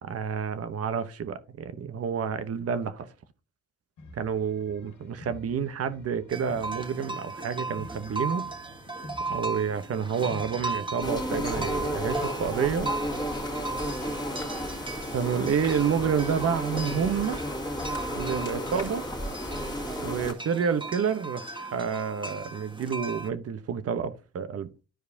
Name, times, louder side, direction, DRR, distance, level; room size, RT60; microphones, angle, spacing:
voice 1, 0.0-3.1 4.1-8.5 9.3-12.9 15.1-17.4 18.1-19.1 20.0-24.7, right 7 dB, 50° right, 1.0 m, -29 dB
sound 1, 4.0-12.9, equal, 70° left, 1.7 m, -48 dB
sound 2, 6.3-23.3, right 3 dB, 15° right, 1.5 m, -37 dB
sound 3, 11.0-20.3, equal, 15° left, 2.2 m, -33 dB
13.0 x 4.7 x 2.8 m
cardioid pair, 90°, 30 cm